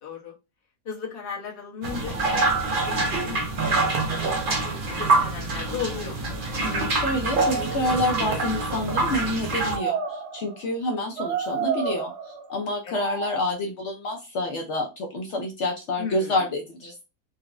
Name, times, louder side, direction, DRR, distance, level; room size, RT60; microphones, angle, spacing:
voice 1, 0.0-0.3 0.8-6.3 12.8-12.9 16.0-16.5, left 6 dB, 40° left, -3 dB, 0.9 m, -36 dB
sound 1, 1.8-9.8, right 3 dB, 60° right, 0.5 m, -25 dB
sound 2, 6.3-6.5 7.4-8.7 9.6-10.6 11.2-12.5 12.9-13.5, right 6 dB, 80° right, 1.2 m, -31 dB
voice 2, 6.6-12.1 12.5-17.0, left 1 dB, 70° left, 2 dB, 0.6 m, -28 dB
3.9 x 2.1 x 2.4 m, 0.27 s
omnidirectional pair, 1.8 m